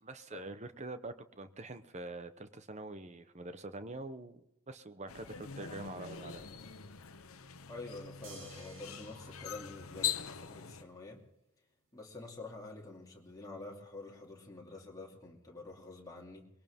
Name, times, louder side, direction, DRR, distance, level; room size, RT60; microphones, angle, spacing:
voice 1, 0.0-6.4, right 2 dB, 35° right, 1.0 m, -45 dB
sound 1, 5.1-10.8, left 9 dB, 80° left, 1.0 m, -42 dB
voice 2, 7.7-11.2 11.9-16.5, left 3 dB, 15° left, 2.7 m, -48 dB
sound 2, 8.2-10.7 12.4-12.5, right 1 dB, 65° right, 7.7 m, -55 dB
22.0 x 18.0 x 3.7 m
head